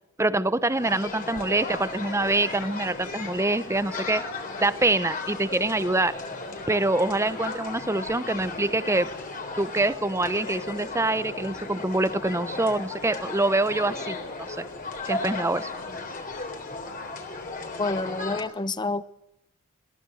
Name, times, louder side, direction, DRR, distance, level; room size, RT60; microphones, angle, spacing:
voice 1, 0.2-4.2 4.6-6.1 6.7-9.1 9.6-14.2 14.5-14.7 15.0-15.7, right 2 dB, 15° right, 0.8 m, -25 dB
sound 1, 0.6-18.4, left 3 dB, 40° left, 3.6 m, -35 dB
voice 2, 17.8-19.0, left 3 dB, 20° left, 0.7 m, -28 dB
21.5 x 17.0 x 7.8 m
head